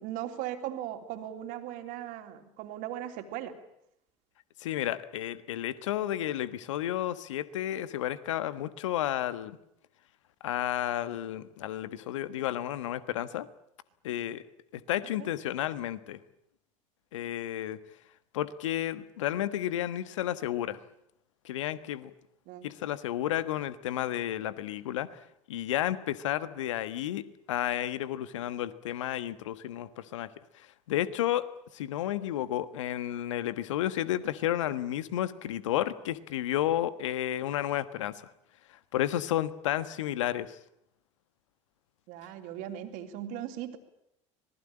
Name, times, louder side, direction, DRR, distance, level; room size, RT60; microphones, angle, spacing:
voice 1, 0.0-3.6 15.2-15.3 22.5-22.8 42.1-43.8, right 11 dB, 60° right, 7 dB, 3.3 m, -38 dB
voice 2, 4.6-9.6 10.4-13.5 14.0-14.4 14.7-16.2 17.1-17.8 18.3-20.8 21.4-22.1 22.6-30.3 30.5-31.4 31.7-38.3 38.9-40.6, left 12 dB, 75° left, 15 dB, 1.4 m, -32 dB
25.5 x 20.0 x 8.8 m, 0.77 s
hypercardioid pair, 70°, 16 cm